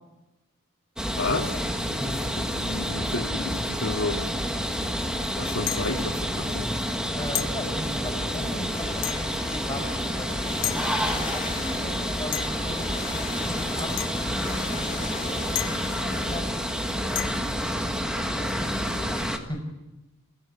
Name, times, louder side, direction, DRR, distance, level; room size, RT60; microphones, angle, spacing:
sound 1, 1.0-19.4, equal, 5° right, 1.8 m, -29 dB
voice 1, 1.2-1.6 2.0-4.3 5.4-6.7, left 2 dB, 80° left, -4 dB, 2.7 m, -31 dB
voice 2, 1.9-2.3 7.1-17.9 18.2-19.6, left 1 dB, 20° left, 4 dB, 5.1 m, -39 dB
sound 2, 5.7-6.0 7.4-7.6 9.0-9.4 10.6-10.8 12.3-12.7 14.0-14.2 15.6-16.0 17.2-17.5, left 13 dB, 55° left, 1.1 m, -31 dB
sound 3, 8.7-16.4, left 5 dB, 35° left, 2.1 m, -39 dB
29.0 x 16.5 x 8.7 m, 1.0 s
head